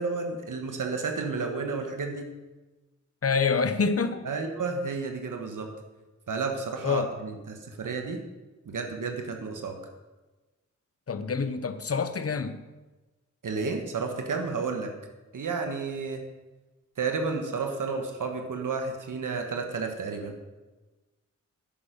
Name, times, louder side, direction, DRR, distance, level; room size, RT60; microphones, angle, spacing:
voice 1, 0.0-2.3 4.2-5.7 6.3-8.2 8.6-9.8 13.4-14.9 15.3-16.2 17.0-20.3, right 4 dB, 85° right, 4 dB, 1.4 m, -31 dB
voice 2, 3.2-4.2 6.8-7.1 11.1-12.6, left 5 dB, 50° left, 10 dB, 0.9 m, -26 dB
11.0 x 8.8 x 5.3 m, 1.2 s
wide cardioid pair, 75°, 31 cm